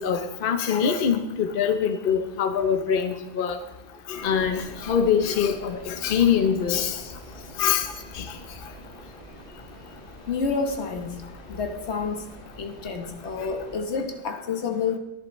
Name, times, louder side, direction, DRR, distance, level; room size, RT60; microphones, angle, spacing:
voice 1, 0.0-3.6 4.1-7.0 7.6-7.9 8.1-8.3, left 7 dB, 55° left, 0.9 m, -24 dB
sound 1, 4.1-13.8, right 1 dB, 30° left, 4.6 m, -45 dB
voice 2, 10.3-15.0, left 5 dB, 80° left, 1.3 m, -30 dB
14.5 x 10.5 x 3.1 m
omnidirectional pair, 1.1 m